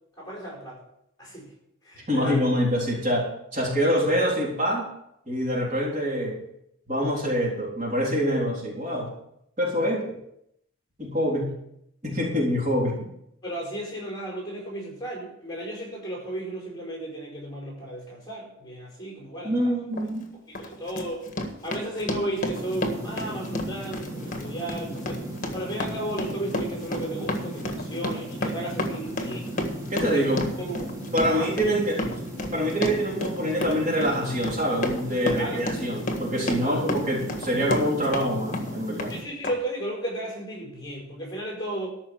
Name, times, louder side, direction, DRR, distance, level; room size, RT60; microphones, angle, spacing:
voice 1, 0.2-0.8 1.2-1.5 1.8-2.4 9.8-9.9 13.4-19.7 20.5-21.2 21.6-25.2 25.5-29.5 30.0-30.2 30.6-30.9 31.3-31.5 35.4-35.6 36.6-36.9 39.1-41.9, right 1 dB, 20° left, -2 dB, 5.1 m, -34 dB
voice 2, 2.1-3.3 3.5-4.9 5.3-6.4 6.9-9.1 9.6-10.1 11.0-11.5 12.0-12.9 19.4-20.3 29.9-30.4 30.8-32.0 32.5-39.1, equal, 35° right, -4 dB, 3.6 m, -25 dB
Run, 19.9-20.1 20.5-38.3 38.5-39.1 39.4-39.5, left 1 dB, 40° left, 1.6 m, -31 dB
sound 1, 22.5-39.2, right 1 dB, 15° right, 2.0 m, -37 dB
13.5 x 6.0 x 7.8 m, 0.77 s
head